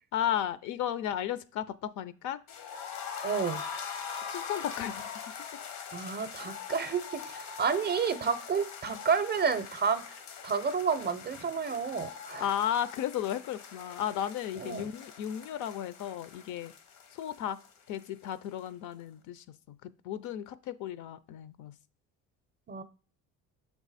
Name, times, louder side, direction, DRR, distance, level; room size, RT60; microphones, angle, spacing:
voice 1, 0.1-2.4 4.3-5.1 12.4-16.7 17.1-17.6 17.9-21.7, left 10 dB, 60° left, 16 dB, 0.5 m, -34 dB
sound 1, 2.5-18.3 18.6-18.7 19.0-19.1, left 6 dB, 90° left, 1.1 m, -43 dB
voice 2, 3.2-3.6 5.9-10.1 10.4-12.5 14.6-14.9 22.7-22.8, right 6 dB, 30° right, 12 dB, 0.5 m, -30 dB
6.9 x 3.5 x 4.0 m, 0.39 s
cardioid pair, 110°, 33 cm